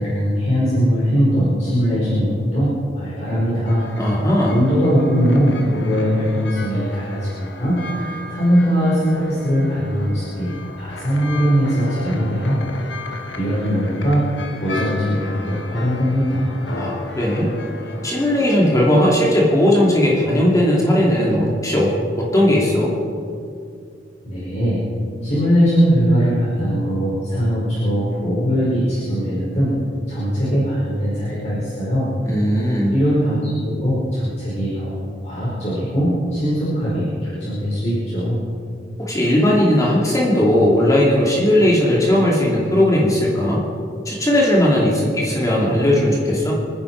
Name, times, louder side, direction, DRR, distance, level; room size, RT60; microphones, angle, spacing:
voice 1, 0.0-3.8 4.5-10.5 10.8-12.6 13.4-14.3 14.6-16.5 24.2-24.8 25.2-29.7 30.1-32.1 32.9-35.0 35.2-38.4, equal, 40° left, -9 dB, 5.3 m, -20 dB
sound 1, 3.7-18.6, left 2 dB, 80° left, 1.8 m, -35 dB
voice 2, 4.0-4.6 16.7-17.5 18.0-22.9 32.2-32.9 39.0-43.6 44.0-46.5, left 1 dB, 20° left, -4 dB, 2.8 m, -17 dB
27.5 x 10.5 x 4.8 m, 2.4 s
head